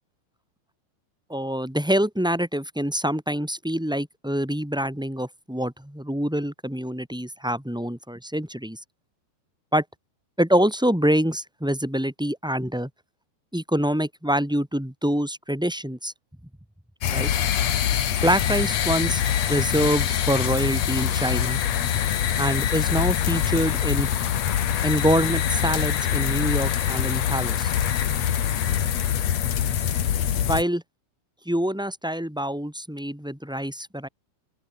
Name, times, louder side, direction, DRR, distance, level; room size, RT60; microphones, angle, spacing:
voice 1, 1.3-8.8 9.7-9.8 10.4-12.9 13.5-16.1 17.1-17.3 18.2-19.2 19.5-21.6 22.4-24.1 24.8-27.7 30.4-30.8 31.4-34.1, equal, 5° right, 0.7 m, -25 dB
sound 1, 17.0-30.6, left 10 dB, 55° left, 2.2 m, -24 dB
open air
omnidirectional pair, 4.8 m